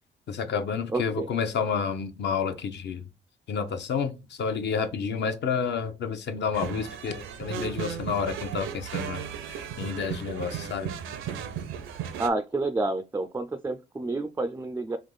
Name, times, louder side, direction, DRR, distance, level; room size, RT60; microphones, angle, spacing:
voice 1, 0.3-3.0 3.5-9.2 9.5-10.9, left 6 dB, 60° left, 0.8 m, -30 dB
voice 2, 0.9-1.3 12.2-15.0, right 2 dB, 10° right, 0.3 m, -29 dB
sound 1, 6.5-12.3, right 8 dB, 85° right, 0.7 m, -35 dB
3.5 x 2.9 x 3.9 m
cardioid pair, 90°, 20 cm